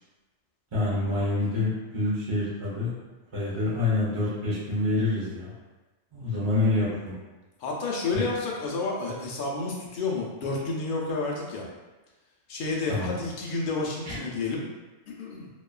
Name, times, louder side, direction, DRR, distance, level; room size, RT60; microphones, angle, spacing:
voice 1, 0.7-3.0 3.3-5.5 6.1-7.1 8.1-8.2 12.9-13.1 14.0-14.2, left 2 dB, 30° right, -9 dB, 0.6 m, -27 dB
voice 2, 7.6-11.7 12.5-14.6 15.1-15.5, left 3 dB, 60° left, -3 dB, 0.5 m, -30 dB
2.9 x 2.2 x 2.2 m, 1.2 s
omnidirectional pair, 1.3 m